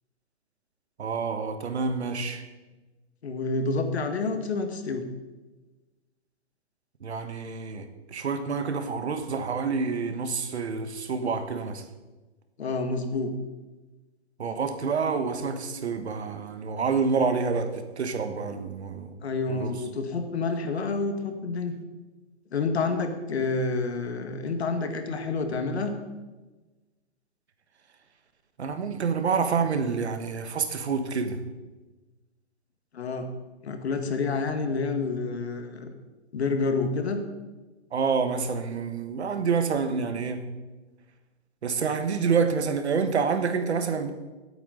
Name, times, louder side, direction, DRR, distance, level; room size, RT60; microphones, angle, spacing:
voice 1, 1.0-2.4 7.0-11.8 14.4-19.2 19.5-19.8 28.6-31.4 37.9-40.4 41.6-44.1, right 5 dB, 70° right, 1.5 m, -28 dB
voice 2, 3.2-5.1 12.6-13.3 19.2-21.8 22.5-26.0 32.9-33.3 33.6-35.9 36.3-37.2, left 3 dB, 65° left, 1.8 m, -28 dB
16.5 x 9.0 x 4.0 m
hypercardioid pair, 170°, 34 cm